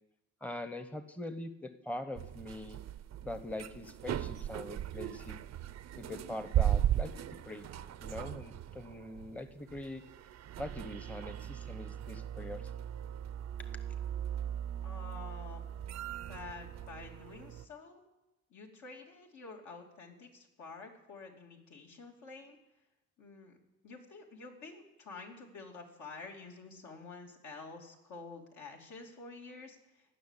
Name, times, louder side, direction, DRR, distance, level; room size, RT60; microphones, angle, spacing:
voice 1, 0.4-2.8 3.2-5.4 5.9-7.7 8.0-10.0 10.6-12.7, left 1 dB, 5° left, 10 dB, 0.9 m, -43 dB
sound 1, 2.2-17.6, right 11 dB, 60° right, 0.6 m, -38 dB
voice 2, 14.8-15.6 16.3-18.0 18.5-22.6 23.2-23.6 23.8-29.8, left 4 dB, 70° left, 0 dB, 2.8 m, -49 dB
17.0 x 6.2 x 9.8 m, 0.97 s
cardioid pair, 90°, 30 cm